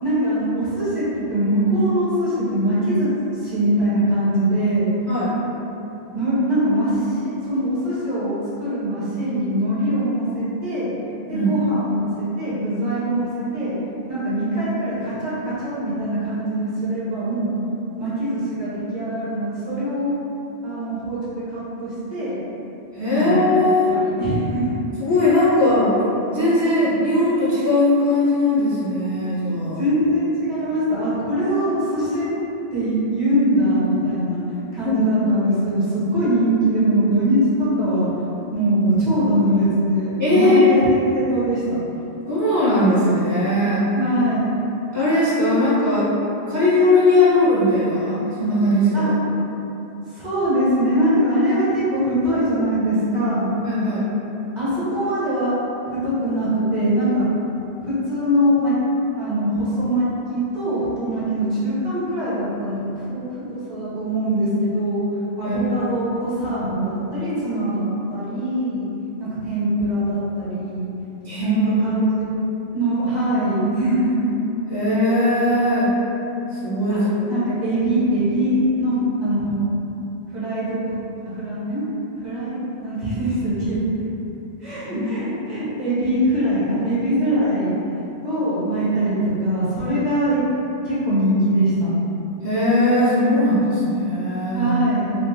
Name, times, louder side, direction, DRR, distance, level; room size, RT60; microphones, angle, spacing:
voice 1, 0.0-3.1 3.4-4.9 6.1-10.9 11.3-13.8 14.1-17.5 18.0-20.1 20.6-22.4 23.1-23.4 23.8-24.8 25.1-25.3 29.8-32.3 32.7-34.4 34.7-38.1 38.5-40.8 41.1-41.6 43.9-44.4 48.9-49.1 50.2-53.5 54.6-55.6 55.9-57.2 57.8-58.7 59.2-65.0 65.4-68.9 69.2-70.9 71.4-72.3 72.7-74.3 76.9-77.0 77.3-79.7 80.3-81.0 81.2-81.9 82.2-83.9 84.6-87.7 88.2-90.4 90.8-91.9 94.5-95.1, right 1 dB, 45° right, -11 dB, 1.1 m, -22 dB
voice 2, 22.9-23.9 25.0-25.9 26.3-29.8 34.8-35.0 40.2-40.7 42.3-43.9 44.9-46.1 46.5-49.1 53.6-54.1 65.4-65.8 71.2-72.0 74.7-75.9 76.5-77.3 84.9-85.0 92.4-94.7, left 1 dB, 20° left, -12 dB, 0.6 m, -19 dB
2.7 x 2.5 x 3.6 m, 3.0 s
omnidirectional pair, 1.1 m